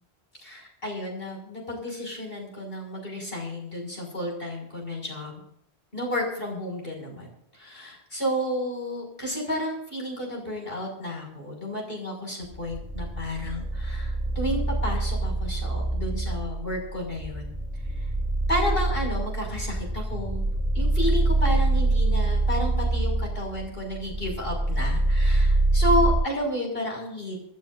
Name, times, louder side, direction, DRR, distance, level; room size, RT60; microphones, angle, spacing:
voice 1, 0.4-5.4 5.9-17.5 18.0-18.1 18.5-20.4 20.7-27.3, left 1 dB, 60° left, 0 dB, 6.5 m, -31 dB
sound 1, 12.4-26.1, right 2 dB, 5° left, 3.4 m, -25 dB
28.0 x 11.5 x 2.6 m, 0.72 s
omnidirectional pair, 1.1 m